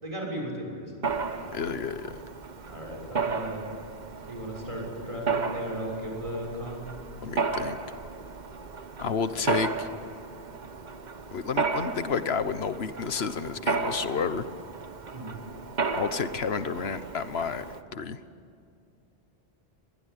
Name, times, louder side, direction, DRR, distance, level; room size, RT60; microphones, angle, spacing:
voice 1, 0.0-1.0 1.3-1.7 2.7-3.7 4.2-6.8 15.1-15.3, equal, 30° right, -1 dB, 6.6 m, -36 dB
Mechanisms, 1.0-17.8, right 4 dB, 45° right, 1.2 m, -34 dB
voice 2, 1.5-2.2 7.2-7.8 9.0-9.9 11.3-14.5 15.9-17.6 17.9-18.2, left 6 dB, 80° left, 12 dB, 1.4 m, -30 dB
24.5 x 20.5 x 9.4 m, 2.4 s
omnidirectional pair, 1.0 m